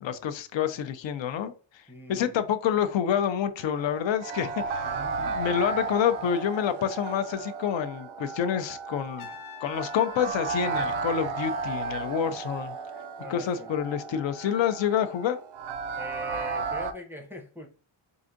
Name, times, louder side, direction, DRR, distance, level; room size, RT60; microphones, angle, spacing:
voice 1, 0.0-1.8 2.1-4.9 5.2-9.4 9.6-12.7 13.3-15.4, left 9 dB, 65° left, 0.5 m, -28 dB
voice 2, 1.9-2.4 4.8-5.2 13.2-13.7 16.0-17.7, left 1 dB, 5° right, 0.5 m, -41 dB
sound 1, 3.6-16.9, right 4 dB, 70° right, 0.5 m, -34 dB
Trumpet, 9.2-12.2, left 7 dB, 90° left, 0.9 m, -48 dB
4.7 x 2.5 x 2.5 m
wide cardioid pair, 140°, 49 cm